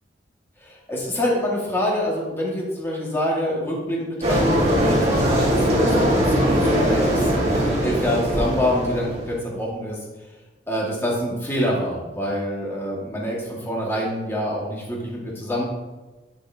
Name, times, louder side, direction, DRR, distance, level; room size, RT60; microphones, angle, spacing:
voice 1, 0.6-10.0 10.7-15.6, equal, 15° left, -4 dB, 1.8 m, -26 dB
sound 1, 4.2-9.3, equal, 35° right, 1.7 m, -20 dB
9.8 x 6.5 x 2.8 m, 1.1 s
head